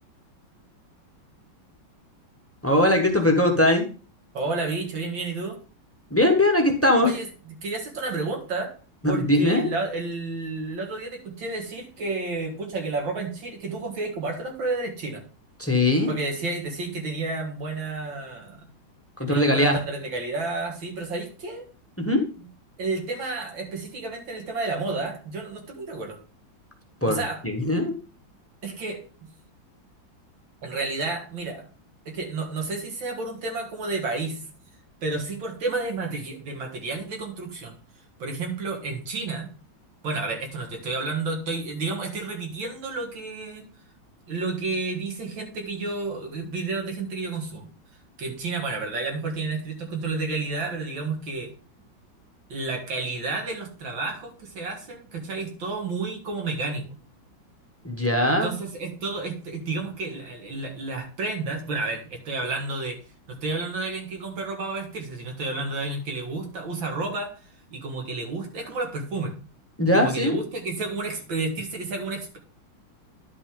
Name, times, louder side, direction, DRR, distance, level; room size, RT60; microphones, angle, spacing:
voice 1, 2.6-3.8 6.1-7.1 9.0-9.7 15.6-16.1 19.2-19.8 22.0-22.2 27.0-27.2 27.4-27.9 57.8-58.5 69.8-70.4, left 1 dB, 10° left, 3 dB, 0.7 m, -20 dB
voice 2, 4.3-5.6 7.0-8.7 9.1-15.2 16.1-18.7 19.2-21.7 22.8-26.2 27.1-27.4 28.6-29.0 30.6-31.7 32.1-34.4 35.0-37.7 38.2-39.5 40.0-43.7 44.3-47.7 48.2-51.5 52.5-56.9 58.4-63.0 63.3-67.3 67.7-69.3 69.9-72.4, right 3 dB, 70° right, 2 dB, 2.4 m, -31 dB
11.0 x 5.3 x 3.7 m, 0.37 s
omnidirectional pair, 2.2 m